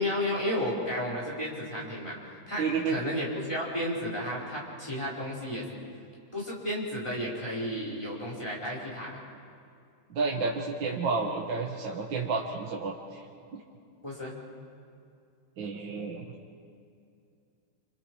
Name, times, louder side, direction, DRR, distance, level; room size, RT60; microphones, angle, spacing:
voice 1, 0.0-5.7 6.3-9.2 14.0-14.4, left 1 dB, 15° left, -5 dB, 4.9 m, -33 dB
voice 2, 2.6-3.0 10.1-13.2 13.5-13.6 15.6-16.2, right 4 dB, 75° right, -1 dB, 2.1 m, -31 dB
28.0 x 27.0 x 4.8 m, 2.4 s
omnidirectional pair, 2.0 m